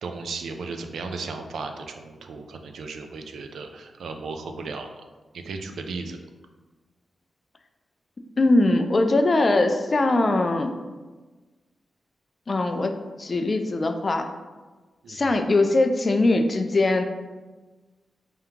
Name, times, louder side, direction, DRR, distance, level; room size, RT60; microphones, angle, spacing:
voice 1, 0.0-5.0 5.3-6.2 15.0-15.4, right 4 dB, 90° right, 5 dB, 0.4 m, -35 dB
voice 2, 8.4-10.7 12.5-12.9 13.2-14.3 15.1-17.0, left 2 dB, 35° left, 6 dB, 0.3 m, -21 dB
3.5 x 2.8 x 3.5 m, 1.3 s
wide cardioid pair, 115°, 0 cm